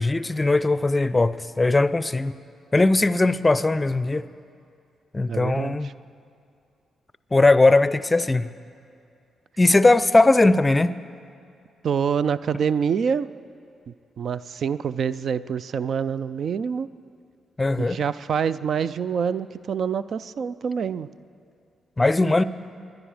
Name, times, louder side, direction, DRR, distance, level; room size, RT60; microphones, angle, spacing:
voice 1, 0.0-2.3 2.7-4.3 5.1-5.9 7.3-8.5 9.6-11.0 17.6-18.0 22.0-22.4, left 2 dB, 25° left, 16 dB, 0.5 m, -19 dB
voice 2, 5.3-5.9 11.8-13.3 14.2-16.9 17.8-21.1, right 7 dB, 65° right, 16 dB, 0.3 m, -26 dB
21.0 x 10.5 x 4.9 m, 2.5 s
hypercardioid pair, 45°, 0 cm